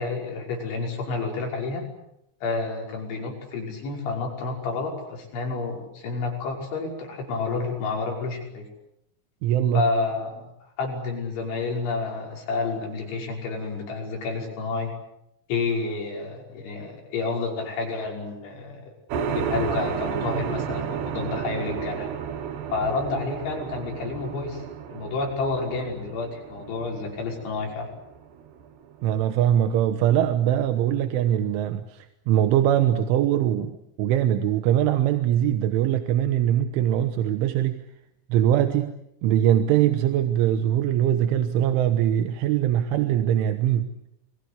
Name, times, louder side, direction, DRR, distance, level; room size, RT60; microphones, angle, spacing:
voice 1, 0.0-1.8 2.4-8.7 9.7-10.5 10.8-14.9 15.5-18.9 19.3-22.1 22.7-27.9, left 3 dB, 75° left, 0 dB, 8.2 m, -30 dB
voice 2, 9.4-9.9 29.0-37.8 38.3-38.9 39.2-43.9, right 11 dB, 90° right, 8 dB, 3.7 m, -22 dB
sound 1, 19.1-29.2, right 7 dB, 65° right, 3.7 m, -32 dB
29.5 x 22.5 x 8.3 m, 0.79 s
omnidirectional pair, 5.4 m